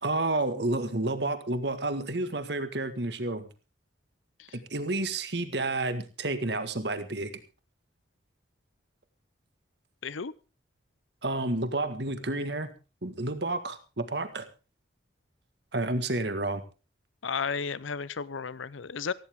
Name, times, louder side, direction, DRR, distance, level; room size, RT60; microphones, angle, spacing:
voice 1, 0.0-3.5 4.7-7.3 11.2-12.7 13.0-14.4 15.7-16.6, right 2 dB, 60° right, 10 dB, 1.7 m, -30 dB
voice 2, 10.0-10.3 17.2-19.1, left 5 dB, 85° left, 18 dB, 0.7 m, -33 dB
17.0 x 15.5 x 3.6 m, 0.33 s
head